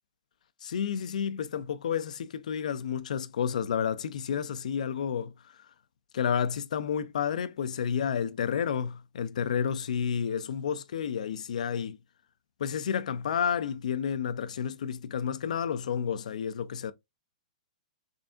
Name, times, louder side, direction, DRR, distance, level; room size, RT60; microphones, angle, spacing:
voice 1, 0.6-5.3 6.1-12.0 12.6-16.9, left 7 dB, 75° left, 0.4 m, -30 dB
3.7 x 3.3 x 2.4 m
hypercardioid pair, 130°, 4 cm